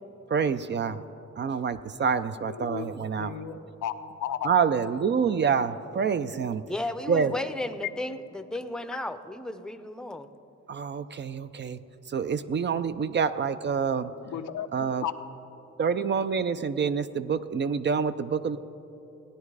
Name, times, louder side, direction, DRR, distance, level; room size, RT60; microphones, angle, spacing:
voice 1, 0.3-1.0 1.4-3.4 4.4-6.6 7.1-7.3 10.7-11.8 12.1-14.1 14.7-15.0 15.8-18.6, right 6 dB, 40° right, 0.5 m, -27 dB
voice 2, 2.5-2.9 3.2-4.5 14.3-14.7 15.0-15.1, left 10 dB, 80° left, 0.7 m, -34 dB
voice 3, 6.7-10.3, left 1 dB, ahead, 0.6 m, -34 dB
17.0 x 10.0 x 4.8 m
cardioid pair, 85°, 30 cm